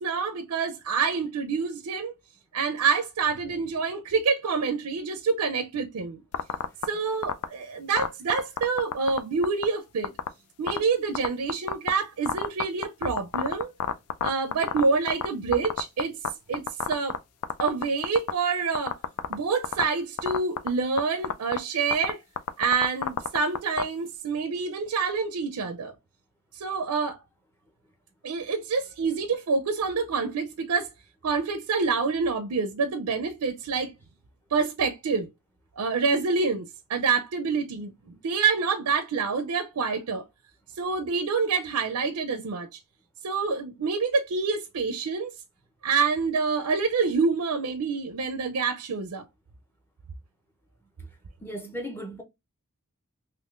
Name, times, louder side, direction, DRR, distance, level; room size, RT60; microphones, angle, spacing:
voice 1, 0.0-2.1 2.5-6.2 6.9-10.1 10.6-13.7 14.2-16.2 16.5-17.2 17.6-19.0 19.3-22.2 22.6-25.9 26.6-27.2 28.2-30.9 31.2-33.9 34.5-35.3 35.8-40.3 40.8-42.7 43.2-45.3 45.8-49.3, right 5 dB, 90° right, 0.5 m, -27 dB
sound 1, 6.3-6.8 7.2-7.4 8.0-9.2 9.4-9.6 10.0-10.3 10.7-10.8 11.1-11.9 12.3-15.3 15.5-16.3 16.5-17.2 17.4-18.3 18.7-19.3 19.6-19.8 20.2-20.7 21.0-21.1 21.2-21.6 21.9-22.1 22.4-23.8, left 8 dB, 85° left, 0.4 m, -26 dB
voice 2, 51.4-52.2, equal, 10° left, 0.6 m, -36 dB
3.5 x 2.9 x 2.4 m
head